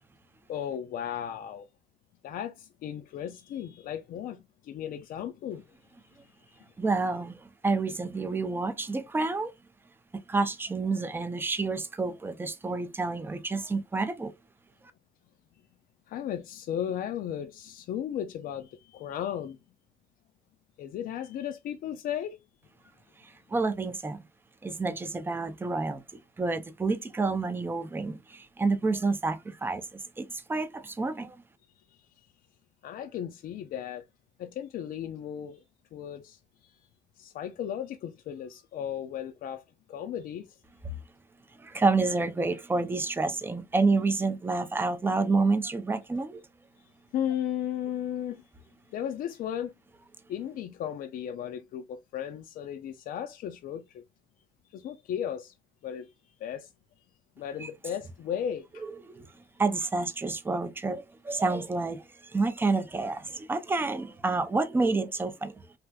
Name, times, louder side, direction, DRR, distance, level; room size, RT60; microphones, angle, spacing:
voice 1, 0.5-1.7 2.2-5.6 16.1-19.6 20.8-22.4 32.8-34.0 34.4-35.6 35.9-36.4 37.2-39.6 39.9-40.6 47.1-48.4 48.9-49.7 50.3-54.0 54.7-55.5 55.8-56.1 56.4-56.7 57.4-58.8, left 9 dB, 60° left, 0.4 m, -35 dB
voice 2, 6.8-9.5 10.3-14.3 23.2-24.2 24.6-31.4 40.8-41.0 41.6-46.4 57.6-57.7 58.8-59.3 59.6-65.6, right 3 dB, 15° right, 0.4 m, -29 dB
3.3 x 2.6 x 2.2 m
cardioid pair, 110°, 17 cm